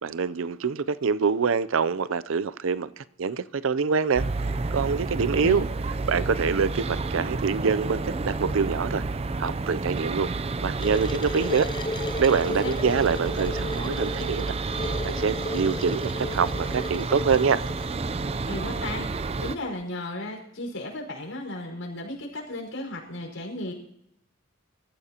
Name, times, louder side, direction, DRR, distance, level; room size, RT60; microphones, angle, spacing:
voice 1, 0.0-4.2 4.7-5.7 6.1-9.0 9.4-10.3 10.6-11.7 12.2-14.5 15.0-17.6, right 5 dB, 80° right, 16 dB, 0.5 m, -25 dB
sound 1, 4.2-19.6, right 3 dB, 30° right, 0.5 m, -30 dB
sound 2, 10.8-17.9, left 2 dB, 25° left, 0.5 m, -34 dB
voice 2, 18.5-19.1 19.4-23.7, left 1 dB, 90° left, 0 dB, 5.1 m, -34 dB
25.0 x 14.5 x 2.9 m, 0.73 s
head